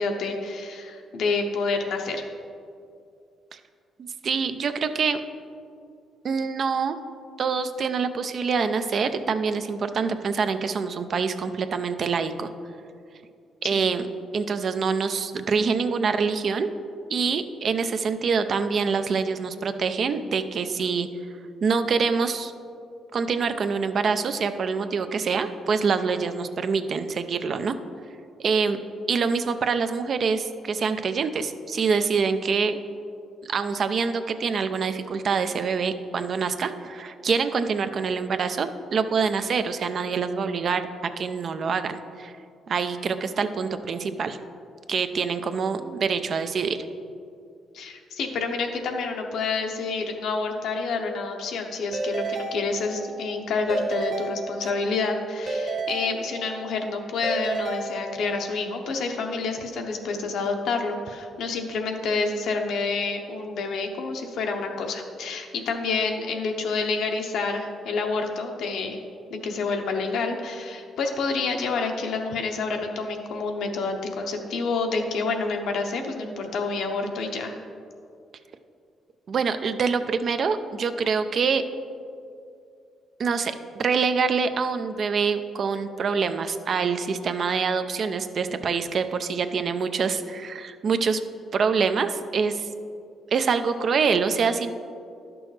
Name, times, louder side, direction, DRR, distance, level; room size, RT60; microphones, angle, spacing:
voice 1, 0.0-2.2 13.7-13.8 47.7-69.0 69.4-77.5, left 4 dB, 75° left, 4 dB, 0.8 m, -28 dB
voice 2, 4.0-5.2 6.2-7.0 7.4-12.5 13.6-14.1 14.3-16.7 17.1-21.1 21.6-22.5 23.1-27.7 28.4-28.8 29.1-32.8 33.5-40.8 41.2-42.3 42.7-44.4 44.9-46.8 79.3-81.6 83.2-91.2 91.5-92.7 93.3-94.7, right 5 dB, 55° right, 10 dB, 0.4 m, -25 dB
Keyboard (musical) / Ringtone, 51.9-53.3 53.7-55.0 55.5-56.8 57.2-58.6, right 3 dB, 40° right, 1.3 m, -32 dB
11.0 x 6.1 x 3.2 m, 2.4 s
cardioid pair, 90°, 0 cm